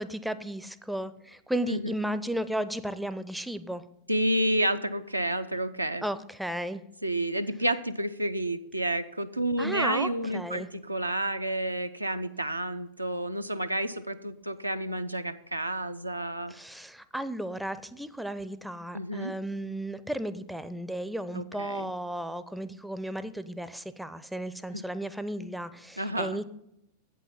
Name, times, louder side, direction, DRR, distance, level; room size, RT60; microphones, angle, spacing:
voice 1, 0.0-3.8 6.0-6.8 9.6-10.7 16.5-26.4, right 1 dB, ahead, 13 dB, 0.4 m, -34 dB
voice 2, 4.1-6.0 7.0-16.5 18.9-19.3 21.3-21.9 24.7-24.8 26.0-26.4, right 1 dB, 85° right, 9 dB, 0.4 m, -30 dB
8.3 x 5.5 x 5.6 m, 0.81 s
figure-of-eight pair, 90°, 0 cm